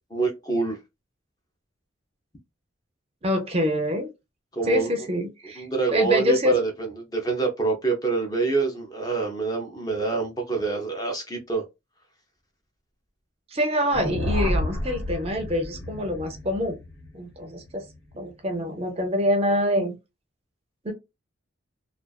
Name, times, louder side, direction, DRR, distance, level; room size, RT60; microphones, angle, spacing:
voice 1, 0.1-0.8 4.5-4.9 5.6-11.6, right 4 dB, 20° left, 0.5 m, -26 dB
voice 2, 3.2-4.1 4.6-5.7 5.9-6.5 13.5-16.8 17.1-17.8 18.1-19.9 20.8-20.9, left 1 dB, 30° right, 0.5 m, -25 dB
sound 1, 13.9-18.2, equal, 75° left, 1.3 m, -30 dB
2.3 x 2.3 x 2.3 m
head